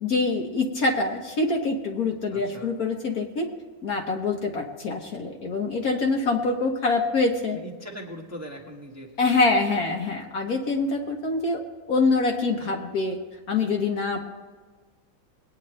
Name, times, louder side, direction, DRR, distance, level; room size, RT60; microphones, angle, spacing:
voice 1, 0.0-3.5 3.8-7.6 9.2-11.6 11.9-13.2 13.5-14.2, left 3 dB, 55° left, 1 dB, 1.4 m, -25 dB
voice 2, 2.3-2.7 7.5-9.1, equal, 10° right, -1 dB, 1.3 m, -40 dB
22.0 x 9.4 x 3.2 m, 1.4 s
omnidirectional pair, 2.0 m